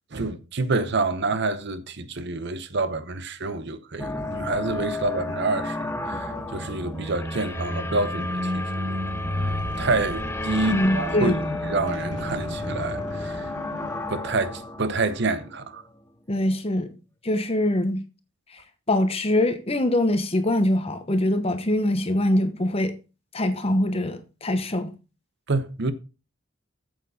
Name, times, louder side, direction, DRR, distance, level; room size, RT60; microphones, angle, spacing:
voice 1, 0.1-9.0 9.3-11.3 11.6-13.5 14.1-15.8 25.5-25.9, right 3 dB, 60° right, 0.8 m, -28 dB
sound 1, 4.0-16.1, left 2 dB, 10° left, 0.7 m, -33 dB
sound 2, 5.8-14.6, equal, 40° right, 1.9 m, -33 dB
voice 2, 10.7-11.6 16.3-17.0 17.2-18.0 18.9-22.9 23.3-24.9, left 1 dB, 30° left, 1.0 m, -23 dB
8.2 x 7.6 x 4.0 m
head